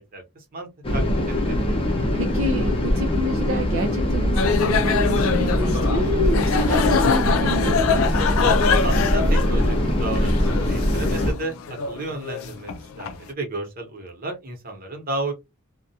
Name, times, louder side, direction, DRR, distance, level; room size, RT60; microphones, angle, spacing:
voice 1, 0.1-1.8 8.8-12.7 13.0-15.3, right 2 dB, 45° right, 0.9 m, -33 dB
sound 1, 0.8-11.3, left 1 dB, 25° left, 0.6 m, -22 dB
voice 2, 2.1-8.1, equal, 70° right, 0.5 m, -28 dB
sound 2, 4.4-13.2, left 5 dB, 80° left, 0.4 m, -25 dB
2.3 x 2.1 x 2.7 m
head